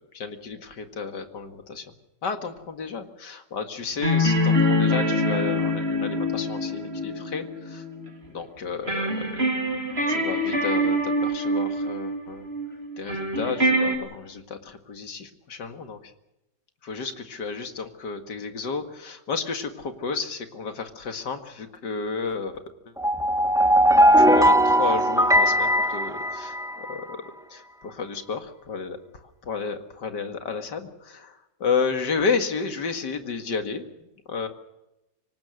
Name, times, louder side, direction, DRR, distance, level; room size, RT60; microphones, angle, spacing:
voice 1, 0.2-1.8 2.2-7.8 8.3-9.5 10.1-12.5 13.0-16.1 16.8-22.6 24.2-27.2 27.5-29.0 29.4-33.8 34.3-34.5, left 5 dB, 85° left, 7 dB, 2.6 m, -32 dB
sound 1, 4.0-8.1 8.9-14.0, left 1 dB, 35° right, 3.4 m, -25 dB
sound 2, 23.0-26.9, equal, ahead, 1.2 m, -19 dB
26.0 x 18.0 x 6.4 m, 0.91 s
omnidirectional pair, 1.8 m